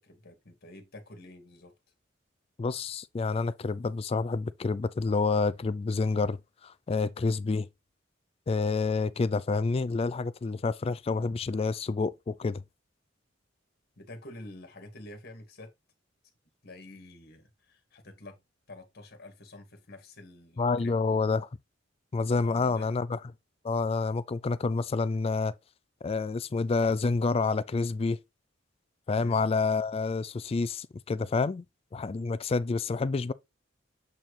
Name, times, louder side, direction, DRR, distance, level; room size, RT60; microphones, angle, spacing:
voice 1, 0.0-1.7 14.0-15.7 16.6-18.4 18.7-21.3 22.4-22.9 29.1-29.4, left 1 dB, 55° left, 1.8 m, -48 dB
voice 2, 2.6-6.4 6.6-7.7 8.5-12.6 20.6-21.5 22.1-23.2 23.6-25.6 26.0-28.2 29.1-31.6 31.9-33.3, left 4 dB, 30° left, 0.3 m, -28 dB
7.5 x 4.5 x 3.2 m
head